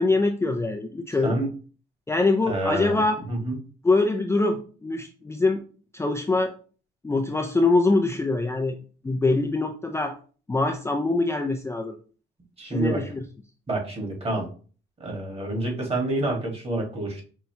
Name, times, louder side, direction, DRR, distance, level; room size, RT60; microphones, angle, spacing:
voice 1, 0.0-1.4 2.1-3.2 3.8-5.6 5.9-6.5 7.0-8.8 9.0-10.2 10.5-12.0 12.6-13.2, left 3 dB, 15° left, 3 dB, 0.4 m, -23 dB
voice 2, 2.5-3.0 3.3-3.5 12.6-13.0 13.7-14.4 15.0-17.2, right 2 dB, 30° right, 0 dB, 1.5 m, -27 dB
5.3 x 2.3 x 2.8 m, 0.39 s
cardioid pair, 90°, 20 cm